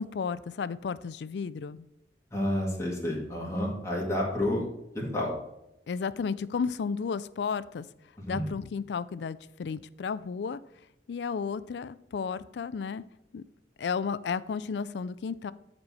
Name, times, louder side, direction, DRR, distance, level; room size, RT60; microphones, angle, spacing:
voice 1, 0.0-1.8 5.9-7.9 8.3-10.6 11.1-13.0 13.3-13.4 13.8-15.5, left 5 dB, 70° left, 17 dB, 0.4 m, -33 dB
voice 2, 2.3-4.7 4.9-5.3 8.2-8.5, left 1 dB, 15° left, -3 dB, 1.8 m, -30 dB
9.4 x 4.5 x 4.2 m, 0.87 s
head